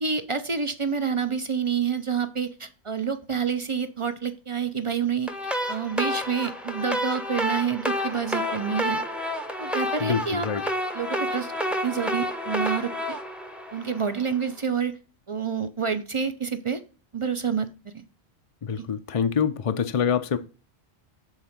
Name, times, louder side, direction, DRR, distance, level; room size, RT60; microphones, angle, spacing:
voice 1, 0.0-5.3 5.7-9.0 9.6-10.5 10.9-11.5 11.8-13.2 13.7-15.0 15.3-16.8 17.1-17.7, right 6 dB, 40° right, 0.5 m, -28 dB
sound 1, 5.3-14.4, equal, ahead, 0.7 m, -30 dB
voice 2, 10.0-10.6 18.6-20.4, left 7 dB, 45° left, 0.5 m, -25 dB
7.3 x 3.7 x 5.7 m
omnidirectional pair, 1.1 m